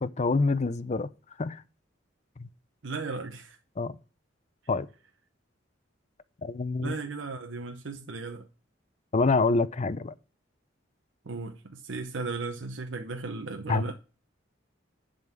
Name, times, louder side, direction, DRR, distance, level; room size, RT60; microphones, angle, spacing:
voice 1, 0.0-1.1 1.4-1.6 2.4-2.5 3.8-4.0 4.7-4.9 6.4-6.9 9.1-10.1 13.7-13.8, left 3 dB, 35° left, 0.5 m, -26 dB
voice 2, 2.8-3.6 6.8-8.5 11.3-13.9, right 3 dB, 80° right, 0.8 m, -36 dB
11.0 x 3.9 x 7.3 m
head